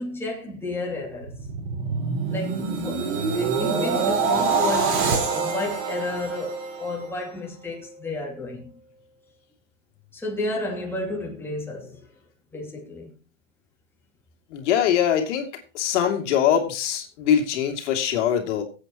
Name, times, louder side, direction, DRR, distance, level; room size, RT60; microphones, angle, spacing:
voice 1, 0.0-1.4 2.3-8.6 10.1-12.0 12.5-13.1, left 2 dB, 5° left, 2.8 m, -32 dB
sound 1, 1.1-7.4 7.8-8.1, right 5 dB, 55° right, 4.3 m, -26 dB
voice 2, 14.5-15.5 15.7-18.6, left 9 dB, 65° left, 2.7 m, -22 dB
22.0 x 8.2 x 3.0 m
supercardioid pair, 140°, 39 cm